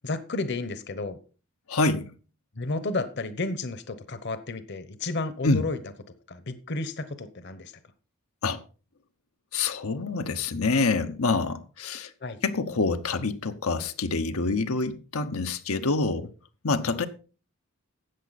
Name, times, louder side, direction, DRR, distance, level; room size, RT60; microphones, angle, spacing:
voice 1, 0.0-1.2 2.5-5.8 6.3-7.7 12.2-12.4, left 3 dB, 55° left, 1.0 m, -32 dB
voice 2, 1.7-2.0 5.4-5.6 8.4-8.6 9.5-12.1 12.4-16.3 16.6-17.1, left 3 dB, 90° left, 1.0 m, -26 dB
13.0 x 8.5 x 4.1 m
head